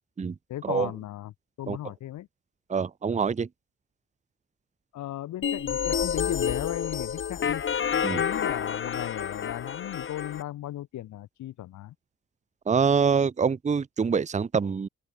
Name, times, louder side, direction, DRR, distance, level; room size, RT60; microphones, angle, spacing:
voice 1, 0.5-1.3 1.6-2.3 4.9-7.6 8.1-11.9, left 13 dB, 70° left, 1.1 m, -36 dB
voice 2, 2.7-3.5 8.0-8.2 12.7-14.9, right 6 dB, 25° right, 0.8 m, -25 dB
sound 1, 5.4-10.4, left 8 dB, 40° left, 1.2 m, -29 dB
open air
cardioid pair, 90°, 30 cm